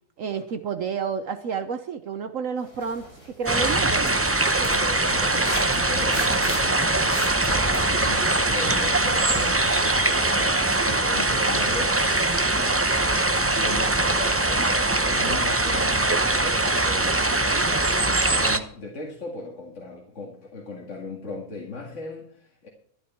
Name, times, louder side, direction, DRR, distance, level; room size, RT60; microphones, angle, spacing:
voice 1, 0.2-4.2, right 6 dB, 60° right, 1.1 m, -30 dB
sound 1, 2.6-3.8 4.1-12.0 12.4-12.5, left 1 dB, 75° left, 6.4 m, -40 dB
sound 2, 3.5-18.6, right 2 dB, 20° right, 0.4 m, -22 dB
voice 2, 4.5-22.7, left 3 dB, 50° left, 2.3 m, -38 dB
13.0 x 11.5 x 4.5 m
omnidirectional pair, 1.6 m